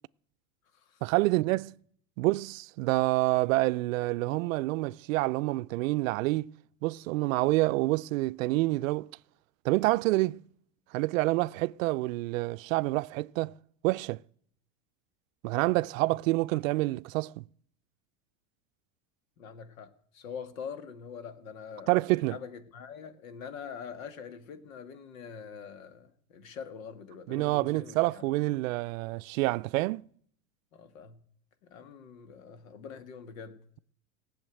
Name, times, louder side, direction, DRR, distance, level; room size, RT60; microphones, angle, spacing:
voice 1, 1.0-1.8 2.2-6.5 6.8-9.1 9.6-10.4 10.9-13.5 13.8-14.2 15.4-17.4 21.9-22.4 27.3-30.0, right 20 dB, 80° right, 0.5 m, -27 dB
voice 2, 19.4-22.0 22.3-28.2 30.7-31.2 31.6-33.6, left 6 dB, 85° left, 1.9 m, -44 dB
17.0 x 7.2 x 9.0 m
supercardioid pair, 160°, 40 cm